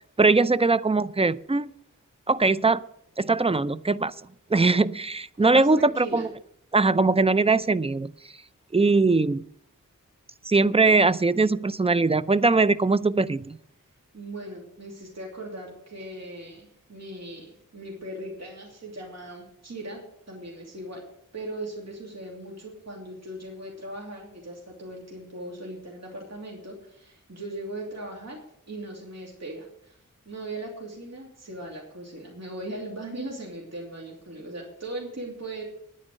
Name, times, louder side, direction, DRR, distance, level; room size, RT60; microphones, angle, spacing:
voice 1, 0.2-1.7 2.3-2.8 3.2-4.1 4.5-6.3 6.7-8.1 8.7-9.4 10.5-13.6, right 3 dB, 20° right, 15 dB, 0.4 m, -21 dB
voice 2, 5.4-6.3 14.1-21.0 21.3-28.4 28.7-30.0 30.3-35.6, right 1 dB, 50° right, -2 dB, 2.8 m, -39 dB
9.8 x 9.7 x 6.6 m, 0.72 s
wide cardioid pair, 60°, 33 cm